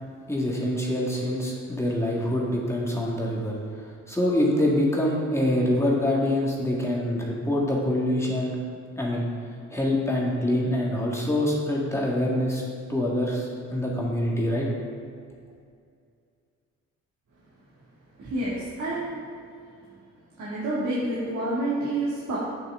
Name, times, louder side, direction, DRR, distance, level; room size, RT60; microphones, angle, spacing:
voice 1, 0.3-3.5 3.8-8.6 9.0-9.2 9.7-12.6 12.9-14.7, left 1 dB, 10° left, -4 dB, 1.9 m, -25 dB
voice 2, 18.2-19.2 20.4-22.4, right 1 dB, 70° right, -8 dB, 2.5 m, -28 dB
10.0 x 9.0 x 3.8 m, 2.3 s
cardioid pair, 90°, 30 cm